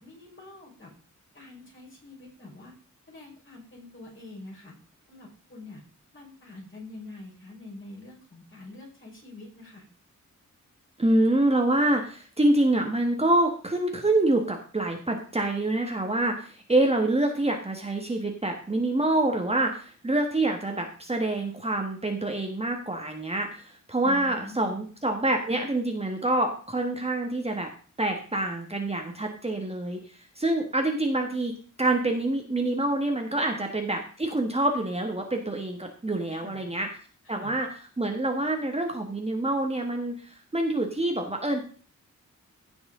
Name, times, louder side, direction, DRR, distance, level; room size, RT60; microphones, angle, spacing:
voice 1, 0.0-0.9 1.3-2.7 3.1-4.7 5.1-5.8 6.1-9.9 24.0-24.8 33.4-33.7 36.3-36.7 37.2-37.6, left 2 dB, 40° left, -2 dB, 4.8 m, -45 dB
voice 2, 11.0-27.7 28.0-30.0 30.4-37.0 37.3-41.6, right 2 dB, 20° right, 3 dB, 1.4 m, -26 dB
15.5 x 6.1 x 3.7 m, 0.42 s
wide cardioid pair, 120°, 31 cm